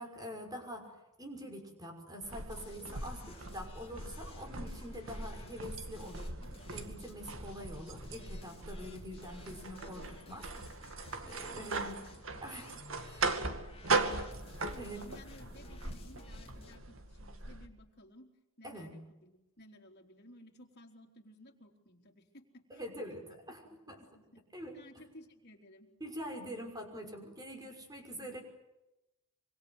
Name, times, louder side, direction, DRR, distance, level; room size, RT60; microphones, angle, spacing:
voice 1, 0.0-6.3 6.7-10.5 11.2-11.9 12.4-13.3 14.8-15.1 18.6-18.9 22.7-23.6 23.9-24.0 24.5-25.0 26.0-28.4, equal, 20° right, 4 dB, 6.0 m, -45 dB
sound 1, 2.2-17.7, right 3 dB, 65° right, 2.3 m, -39 dB
sound 2, 2.5-16.8, left 2 dB, 25° left, 2.9 m, -55 dB
voice 2, 11.6-12.0 14.6-18.3 18.6-24.5 24.7-25.9, left 1 dB, 50° left, 2 dB, 3.9 m, -57 dB
26.0 x 25.0 x 8.1 m, 0.95 s
head